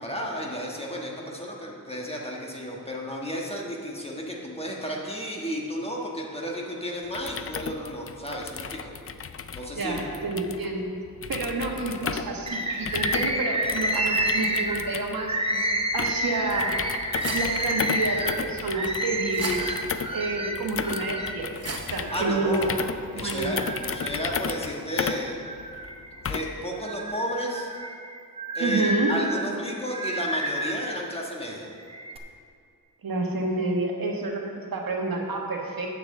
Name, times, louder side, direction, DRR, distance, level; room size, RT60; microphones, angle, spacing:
voice 1, 0.0-8.9 9.5-10.0 22.1-22.9 23.1-25.4 26.2-27.7 28.5-31.7, equal, 15° left, -2 dB, 1.4 m, -33 dB
sound 1, 7.0-26.7, left 6 dB, 40° left, 0.4 m, -34 dB
voice 2, 9.8-10.9 11.3-15.6 15.9-16.7 17.3-19.7 20.1-21.5 21.9-22.6 23.1-23.6 28.6-29.1 33.0-35.9, right 2 dB, 65° right, 0 dB, 1.4 m, -29 dB
Bird, 12.5-21.4 21.9-22.9 23.4-24.4 24.9-26.2 26.7-31.0 31.7-32.2, right 1 dB, 15° right, 0.7 m, -30 dB
sound 2, 16.8-23.6, right 3 dB, 40° right, 1.0 m, -41 dB
8.1 x 6.9 x 6.5 m, 2.4 s
wide cardioid pair, 115°, 38 cm